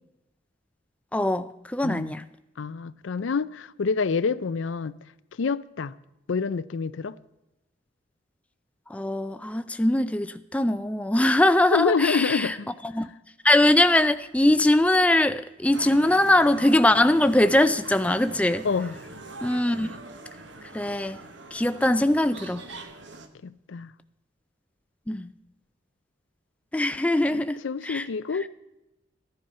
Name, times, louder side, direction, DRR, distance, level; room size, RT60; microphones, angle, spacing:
voice 1, 1.1-2.2 8.9-12.5 12.9-13.1 13.4-18.7 19.4-19.9 20.7-21.2 21.5-22.7 25.1-25.3 26.7-28.1, left 1 dB, 5° left, 0.3 m, -22 dB
voice 2, 1.8-2.1 2.6-4.9 5.4-5.9 6.3-7.2 11.7-12.7 18.6-18.9 23.4-23.9 27.2-28.5, left 5 dB, 75° left, 0.5 m, -27 dB
sound 1, 15.7-23.3, right 3 dB, 65° right, 1.1 m, -42 dB
14.5 x 10.5 x 5.5 m
head